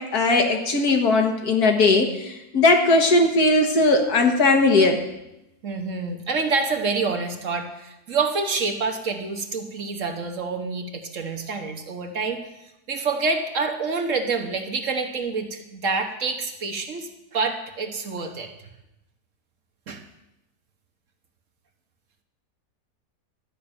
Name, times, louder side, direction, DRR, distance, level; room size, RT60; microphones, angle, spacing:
voice 1, 0.0-5.0, left 2 dB, 70° left, 3 dB, 1.9 m, -19 dB
voice 2, 5.6-12.4 12.9-18.5 19.9-20.0, right 4 dB, 55° right, 5 dB, 1.4 m, -27 dB
12.0 x 5.7 x 8.7 m, 0.90 s
omnidirectional pair, 1.7 m